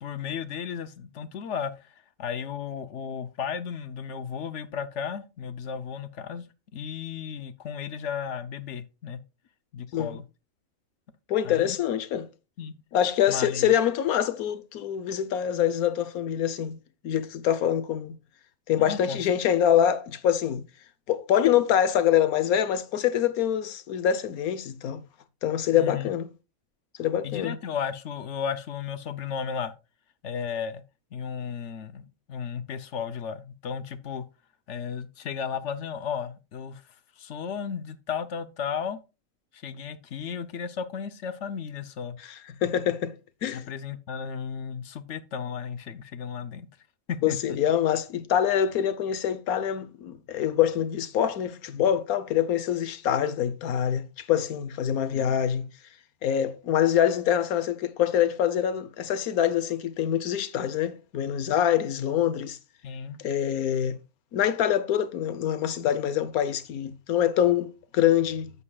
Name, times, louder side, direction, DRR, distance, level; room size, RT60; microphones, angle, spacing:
voice 1, 0.0-1.9 2.2-6.5 6.7-9.2 9.7-10.2 11.4-11.8 12.6-12.7 13.3-13.7 18.8-19.2 25.7-26.1 27.2-29.7 30.2-30.8 31.1-34.2 34.7-36.8 37.2-39.0 39.5-42.2 43.5-46.7 47.1-47.6 55.1-55.3 62.8-63.2, left 7 dB, 60° left, 1.0 m, -34 dB
voice 2, 11.3-12.3 12.9-16.8 17.0-18.2 18.7-20.6 21.1-25.0 25.4-26.3 27.0-27.6 42.2-43.1 43.4-43.6 47.2-55.6 56.2-62.6 63.2-64.0 64.3-68.5, left 10 dB, 85° left, 1.3 m, -25 dB
11.0 x 8.2 x 2.3 m
omnidirectional pair, 1.5 m